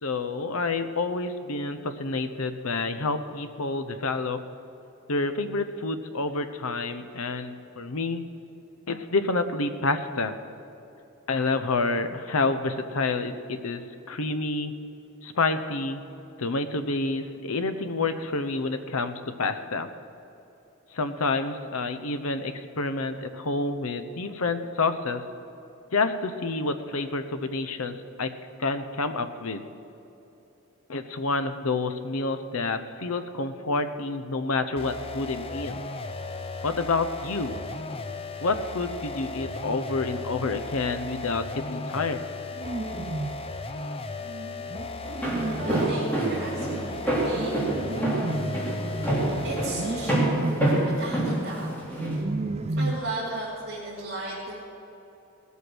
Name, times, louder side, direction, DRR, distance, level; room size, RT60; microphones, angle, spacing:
voice 1, 0.0-4.4 5.1-8.2 8.9-10.3 11.3-14.7 15.2-16.0 16.4-19.9 20.9-25.2 25.9-28.3 28.6-29.6 30.9-35.8 36.6-37.6 38.4-42.2, left 3 dB, 80° left, 9 dB, 0.8 m, -28 dB
sound 1, 34.8-50.3, left 2 dB, 25° left, 0.6 m, -36 dB
sound 2, 42.5-43.5 44.2-53.4, right 2 dB, 30° right, 0.4 m, -33 dB
Walk footsteps, 45.0-52.2, right 1 dB, 10° left, 3.1 m, -27 dB
voice 2, 45.6-47.6 49.3-50.3 50.8-51.8 52.8-54.6, right 2 dB, 45° right, -9 dB, 2.9 m, -35 dB
18.0 x 8.3 x 6.2 m, 3.0 s
head